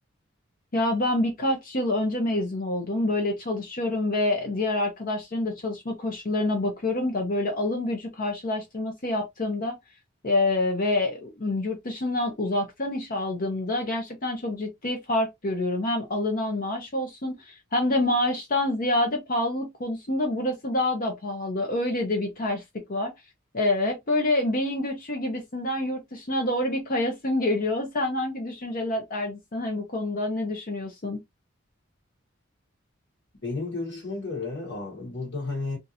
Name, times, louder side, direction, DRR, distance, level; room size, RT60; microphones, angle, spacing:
voice 1, 0.7-9.8 10.2-22.6 22.9-23.1 23.5-31.2, left 1 dB, 45° left, 0.8 m, -27 dB
voice 2, 33.4-35.8, left 3 dB, 65° left, 1.4 m, -32 dB
3.6 x 2.6 x 2.8 m
head